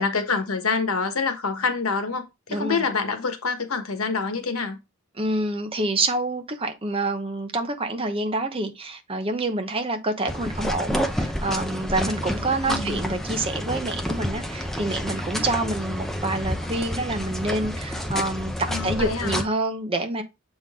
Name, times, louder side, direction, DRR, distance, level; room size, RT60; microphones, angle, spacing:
voice 1, 0.0-4.8 12.7-13.0 18.7-19.4, left 4 dB, 90° left, 1.2 m, -26 dB
voice 2, 2.5-2.8 5.2-18.5 18.8-20.2, right 2 dB, 25° right, 0.8 m, -27 dB
sound 1, 10.3-19.4, equal, ahead, 0.6 m, -29 dB
7.2 x 3.9 x 3.6 m
head